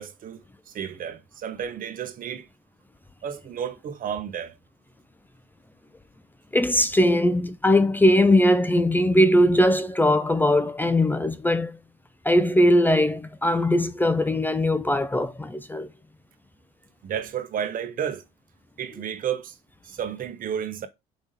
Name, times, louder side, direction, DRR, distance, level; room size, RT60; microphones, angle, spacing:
voice 1, 0.0-2.5 3.2-4.5 17.0-18.2 18.8-19.5 19.9-20.9, right 8 dB, 55° right, 1.1 m, -32 dB
voice 2, 6.5-11.7 12.2-15.9, left 1 dB, 10° left, 0.5 m, -20 dB
5.1 x 3.6 x 5.5 m
cardioid pair, 110°, 17 cm